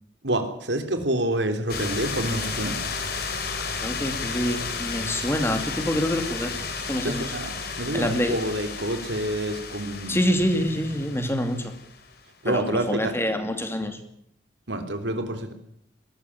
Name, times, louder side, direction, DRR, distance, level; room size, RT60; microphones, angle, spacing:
voice 1, 0.2-2.8 7.0-10.2 12.4-13.1 14.7-15.5, right 1 dB, 90° right, 7 dB, 3.3 m, -28 dB
sound 1, 1.7-12.1, left 4 dB, 60° left, 3.9 m, -33 dB
voice 2, 3.7-6.5 6.9-7.3 7.9-8.4 10.1-11.7 12.5-14.0, equal, 15° left, 7 dB, 2.7 m, -26 dB
21.5 x 14.0 x 9.6 m, 0.71 s
head